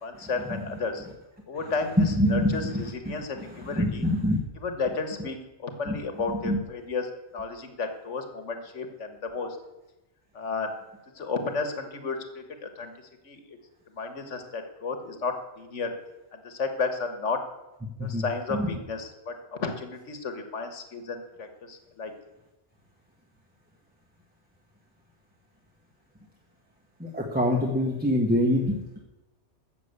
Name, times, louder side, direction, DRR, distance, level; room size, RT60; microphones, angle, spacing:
voice 1, 0.0-1.1 1.5-4.0 4.6-9.6 10.3-10.8 11.2-12.9 13.2-13.4 13.9-16.0 16.3-17.4 18.0-22.1, left 4 dB, 85° left, 7 dB, 1.8 m, -33 dB
voice 2, 2.0-2.5 3.7-4.4 5.9-6.0 6.4-6.6 18.0-18.2 18.6-18.7 27.0-29.0, left 1 dB, 10° right, 0 dB, 1.6 m, -24 dB
14.5 x 7.0 x 8.2 m, 1.0 s
omnidirectional pair, 1.2 m